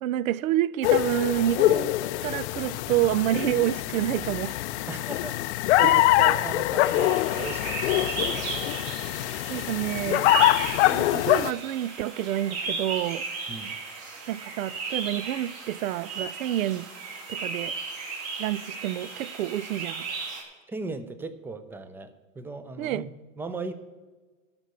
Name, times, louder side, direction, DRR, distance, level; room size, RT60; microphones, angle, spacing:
voice 1, 0.0-2.0 2.2-4.6 5.8-6.0 9.5-10.3 10.7-13.2 14.3-16.9 17.3-17.8 18.4-20.1 22.8-23.1, right 13 dB, 80° right, 0.6 m, -28 dB
sound 1, 0.8-11.5, left 17 dB, 60° left, 0.5 m, -24 dB
voice 2, 4.9-8.8 13.5-13.8 20.7-23.1 23.4-23.7, right 3 dB, 5° right, 0.4 m, -37 dB
sound 2, 6.8-20.4, right 4 dB, 50° right, 3.8 m, -35 dB
13.0 x 5.3 x 8.0 m
hypercardioid pair, 130°, 40 cm